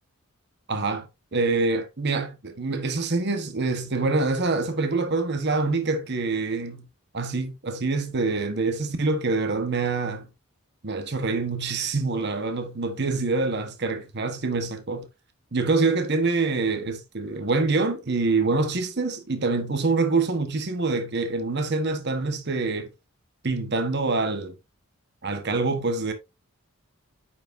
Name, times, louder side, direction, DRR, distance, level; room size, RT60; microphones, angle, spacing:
voice 1, 0.7-6.9 7.1-10.3 10.8-15.1 15.5-22.9 23.4-24.6 25.2-26.1, right 3 dB, 55° right, 1.2 m, -25 dB
9.1 x 6.0 x 2.6 m
head